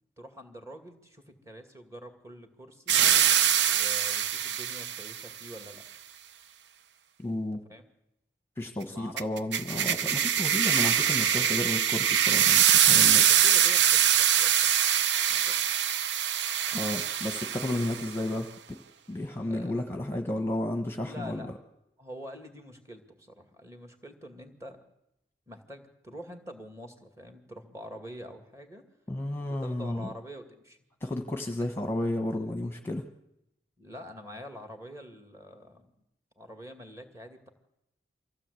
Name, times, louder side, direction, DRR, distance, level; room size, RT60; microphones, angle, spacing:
voice 1, 0.2-3.0 3.6-5.8 7.7-7.8 8.9-9.2 13.0-14.7 15.3-15.6 19.5-19.8 21.0-21.5 22.0-24.8 25.5-28.8 29.3-30.8 33.8-35.9 36.4-37.5, equal, 15° right, 6 dB, 2.3 m, -46 dB
sound 1, 2.9-5.2 9.2-18.1, right 9 dB, 85° right, 0.8 m, -24 dB
voice 2, 7.2-7.6 8.6-13.2 16.7-18.8 19.1-21.5 29.1-30.1 31.0-33.0, left 1 dB, 15° left, 6 dB, 1.2 m, -32 dB
24.0 x 16.0 x 8.3 m, 0.84 s
head